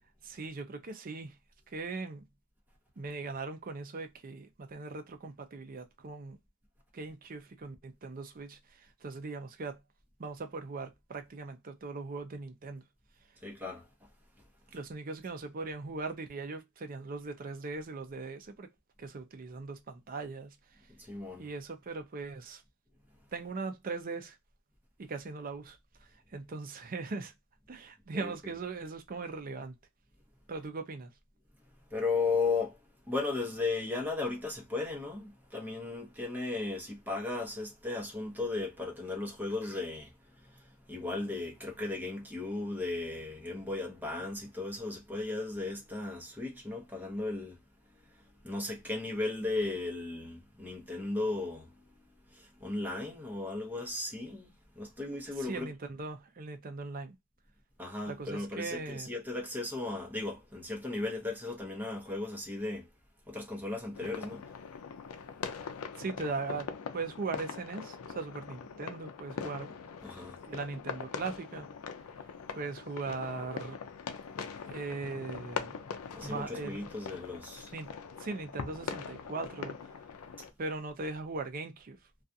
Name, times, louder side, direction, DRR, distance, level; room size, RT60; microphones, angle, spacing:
voice 1, 0.2-1.4 1.7-2.3 3.0-6.4 6.9-9.8 10.2-12.8 14.7-18.7 19.0-20.8 21.4-22.6 23.3-24.4 25.0-27.3 27.7-29.7 30.5-31.1 55.4-57.2 58.1-59.1 66.0-69.7 70.4-71.7 72.5-73.8 74.7-75.8 76.2-76.9 77.7-77.9 78.2-79.9 80.6-82.0, right 3 dB, 40° right, 0.5 m, -39 dB
voice 2, 13.4-13.8 21.0-21.5 28.1-28.3 31.9-32.8 33.1-40.1 40.4-47.6 48.4-51.7 52.3-55.7 57.8-62.9 63.3-64.4 70.0-70.4 76.1-77.7, left 3 dB, 10° right, 0.8 m, -36 dB
sound 1, 63.9-80.5, left 6 dB, 80° left, 0.4 m, -42 dB
2.4 x 2.4 x 2.6 m
head